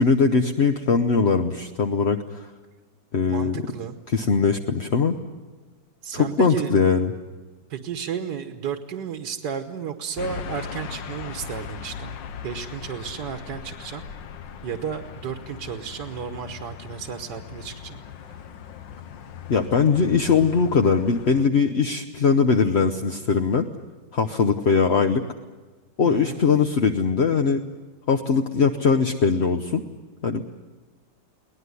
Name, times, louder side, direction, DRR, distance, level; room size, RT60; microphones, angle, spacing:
voice 1, 0.0-2.5 3.1-3.6 4.1-5.1 6.1-7.1 19.5-23.7 24.1-25.2 26.0-27.6 28.1-29.8 30.2-30.4, left 5 dB, 45° left, 5 dB, 0.9 m, -21 dB
voice 2, 3.3-4.0 6.0-6.7 7.7-12.2 12.4-14.1 14.6-18.0 26.0-26.4, right 7 dB, 65° right, 6 dB, 1.7 m, -33 dB
sound 1, 10.2-21.5, left 7 dB, 80° left, 1.7 m, -39 dB
23.0 x 18.5 x 9.7 m, 1.3 s
omnidirectional pair, 2.0 m